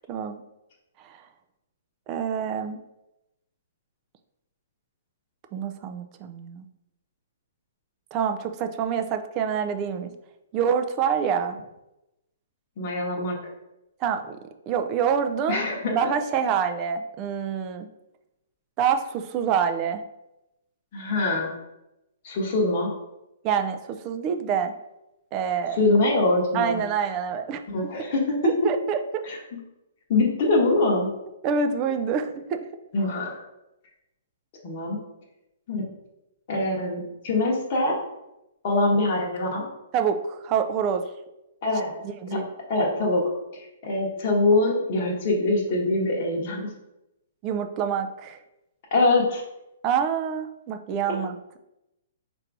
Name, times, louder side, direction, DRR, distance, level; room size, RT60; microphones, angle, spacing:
voice 1, 0.1-0.4 1.0-1.1 2.1-2.8 5.5-6.7 8.1-10.1 10.5-11.6 14.0-14.4 14.7-15.6 15.9-17.9 18.8-20.0 23.4-24.7 25.3-25.8 26.5-27.6 28.4-29.2 31.4-32.6 39.9-41.0 42.0-42.5 47.4-48.4 49.8-51.6, right 7 dB, 25° right, 7 dB, 0.3 m, -26 dB
voice 2, 12.8-13.4 15.5-16.1 20.9-21.5 22.2-22.9 25.7-26.8 27.7-28.5 29.2-29.4 30.1-31.1 32.9-33.4 34.6-35.0 35.7-35.8 36.5-38.0 38.6-39.6 41.6-41.9 42.3-42.4 42.7-43.2 43.5-46.6 48.9-49.4, left 2 dB, 40° left, -3 dB, 1.0 m, -23 dB
4.4 x 2.6 x 4.6 m, 0.91 s
hypercardioid pair, 165°, 0 cm